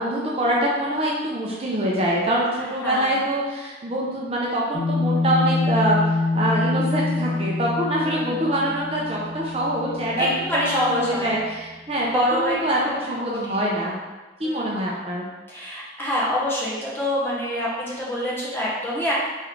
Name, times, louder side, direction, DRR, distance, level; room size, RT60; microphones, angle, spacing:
voice 1, 0.0-6.0 6.3-10.4 10.7-14.0 14.4-15.2, right 1 dB, 30° right, -4 dB, 0.5 m, -24 dB
voice 2, 2.8-3.1 7.9-8.6 10.2-11.3 12.0-12.6 12.8-13.0 13.3-13.7 14.4-14.9 15.5-19.1, left 1 dB, 10° left, -6 dB, 0.8 m, -26 dB
sound 1, 4.7-11.5, left 3 dB, 30° left, 0.4 m, -26 dB
3.6 x 3.6 x 3.1 m, 1.2 s
head